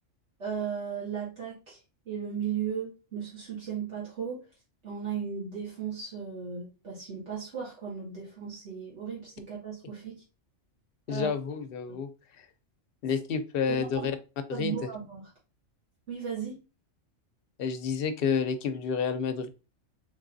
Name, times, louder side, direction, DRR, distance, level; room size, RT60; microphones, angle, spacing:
voice 1, 0.4-1.8 2.1-4.4 4.8-10.2 11.1-11.3 13.7-14.1 14.5-15.3 16.1-16.6, right 7 dB, 65° right, -7 dB, 2.0 m, -36 dB
voice 2, 11.1-12.1 13.0-14.1 14.5-14.7 17.6-19.5, left 6 dB, 60° left, 8 dB, 0.6 m, -29 dB
3.9 x 3.3 x 2.6 m, 0.31 s
omnidirectional pair, 1.3 m